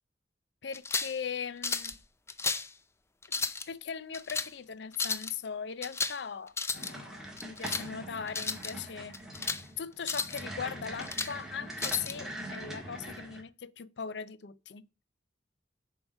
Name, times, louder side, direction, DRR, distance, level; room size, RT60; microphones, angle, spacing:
voice 1, 0.6-2.0 3.3-9.2 9.8-14.9, left 7 dB, 70° left, 0.5 m, -39 dB
sound 1, 0.7-1.2 1.6-2.0 2.3-2.7 3.2-3.7 4.1-4.5 4.9-5.3 5.8-6.2 6.5-6.9 7.4-7.9 8.3-8.7 9.1-9.6 10.0-10.4 10.8-11.3 11.8-12.1, left 4 dB, 15° left, 0.5 m, -33 dB
sound 2, 6.7-13.4, right 1 dB, 5° right, 1.9 m, -43 dB
7.1 x 4.7 x 6.4 m
head